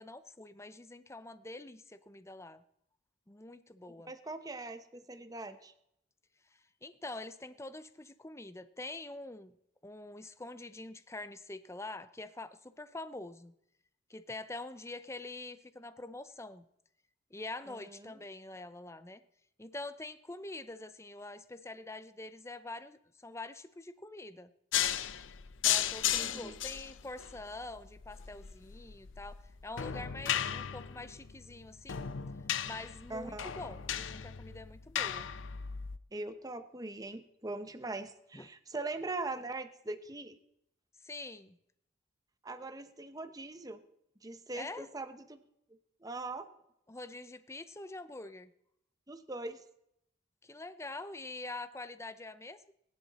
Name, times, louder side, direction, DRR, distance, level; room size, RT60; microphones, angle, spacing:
voice 1, 0.0-2.6 3.3-4.1 6.5-9.6 9.8-13.5 14.1-16.6 17.3-19.2 19.6-24.5 25.6-32.1 32.6-35.3 38.3-38.5 41.0-41.6 44.5-44.9 46.9-48.5 50.4-52.7, left 2 dB, 15° left, 13 dB, 0.7 m, -45 dB
voice 2, 4.0-5.7 17.7-18.1 26.1-26.6 33.1-33.5 36.1-40.4 42.4-43.8 44.2-45.4 46.0-46.5 49.1-49.6, right 2 dB, 20° right, 9 dB, 0.9 m, -41 dB
sound 1, 24.7-36.0, left 10 dB, 70° left, 0.6 m, -35 dB
20.0 x 10.5 x 4.2 m, 0.77 s
head